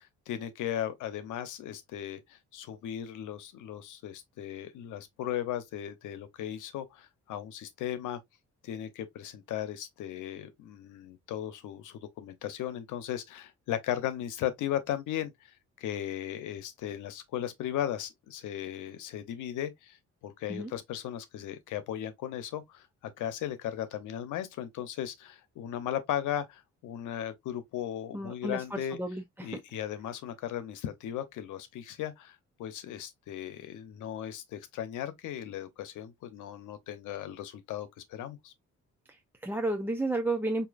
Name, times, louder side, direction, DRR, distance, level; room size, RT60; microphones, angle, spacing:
voice 1, 0.0-8.2 8.6-20.0 20.2-29.0 29.4-38.5, left 11 dB, 85° left, 0.8 m, -37 dB
voice 2, 28.1-29.6 39.1-40.7, right 2 dB, 5° right, 0.6 m, -32 dB
4.8 x 2.8 x 2.5 m
cardioid pair, 90°, 30 cm